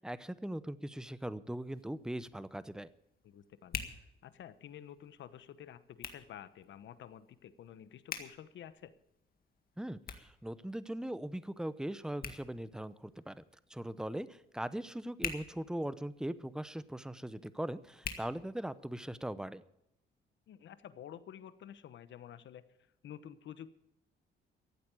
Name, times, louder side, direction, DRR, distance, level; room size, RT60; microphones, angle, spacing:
voice 1, 0.0-2.9 9.8-13.4 13.7-19.6, right 1 dB, 5° right, 15 dB, 0.8 m, -40 dB
Hands, 1.5-19.1, left 6 dB, 50° left, 1.8 m, -49 dB
voice 2, 3.2-8.9 20.5-22.6 23.0-23.7, left 10 dB, 70° left, 14 dB, 1.1 m, -50 dB
15.0 x 8.6 x 8.4 m, 0.80 s
cardioid pair, 90°, 20 cm